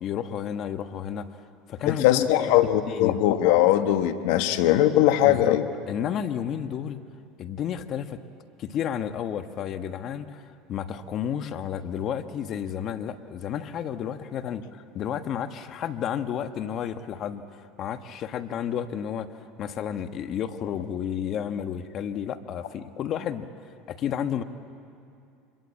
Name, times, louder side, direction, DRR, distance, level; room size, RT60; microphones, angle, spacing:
voice 1, 0.0-1.3 1.7-2.5 2.8-3.2 5.2-5.6 5.9-7.0 7.4-8.2 8.6-19.3 19.6-23.5 23.9-24.4, left 9 dB, 50° left, 9 dB, 1.4 m, -31 dB
voice 2, 1.9-5.6, left 13 dB, 70° left, 9 dB, 1.4 m, -20 dB
25.5 x 22.0 x 8.4 m, 2.5 s
hypercardioid pair, 90°, 0 cm